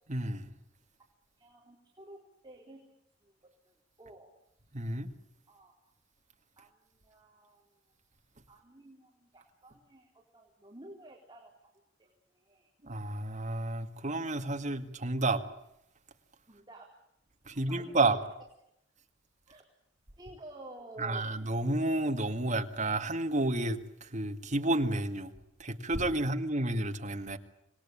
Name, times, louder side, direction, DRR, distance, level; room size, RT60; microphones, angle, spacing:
voice 1, 0.1-0.5 4.7-5.1 12.8-15.4 17.5-18.2 21.0-25.3 25.6-27.4, right 2 dB, 40° right, 6 dB, 2.1 m, -31 dB
voice 2, 1.4-2.8 3.2-3.4 3.7-4.3 5.5-5.7 6.6-7.6 8.5-11.7 12.0-12.7 16.5-17.0 17.5-18.1 19.5-19.7 20.2-21.3 26.1-26.3, right 1 dB, 25° right, -1 dB, 3.8 m, -52 dB
26.5 x 20.0 x 8.7 m, 0.78 s
head